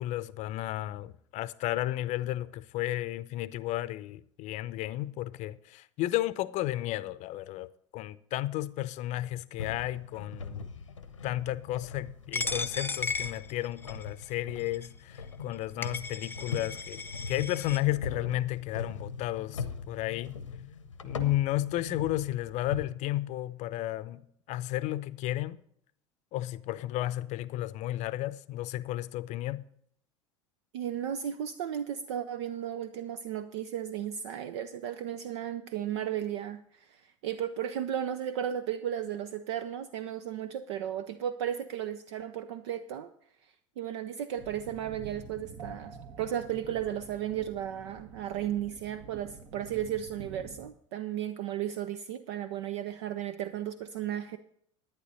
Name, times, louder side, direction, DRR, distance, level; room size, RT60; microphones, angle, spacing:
voice 1, 0.0-7.7 7.9-10.7 11.2-20.4 21.0-24.2 24.5-25.6 26.3-29.6, left 15 dB, 50° left, 0.6 m, -33 dB
sound 1, 9.6-22.8, left 5 dB, 90° left, 0.9 m, -41 dB
Coin (dropping), 12.3-14.1 14.7-14.9 15.5-15.6 15.8-17.8, left 4 dB, 15° left, 0.7 m, -35 dB
voice 2, 30.7-43.1 43.8-54.4, right 10 dB, 65° right, 0.6 m, -35 dB
sound 2, 44.4-50.7, right 5 dB, 50° right, 1.4 m, -47 dB
11.0 x 9.7 x 4.1 m
hypercardioid pair, 75°, 16 cm